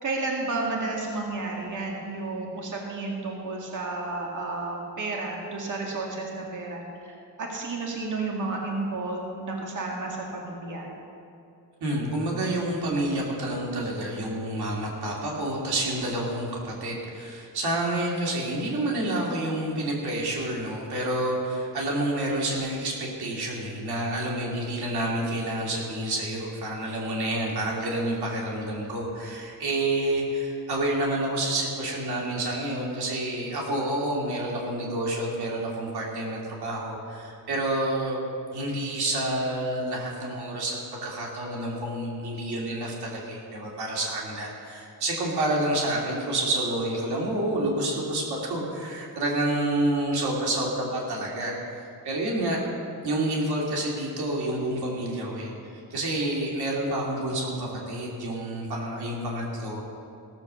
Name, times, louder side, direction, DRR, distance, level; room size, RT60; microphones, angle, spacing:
voice 1, 0.0-10.9, right 3 dB, 50° right, -1 dB, 2.1 m, -32 dB
voice 2, 11.8-38.2 38.5-52.6 53.0-59.8, right 1 dB, 90° right, -2 dB, 2.7 m, -29 dB
16.5 x 7.0 x 6.8 m, 2.6 s
cardioid pair, 105°, 38 cm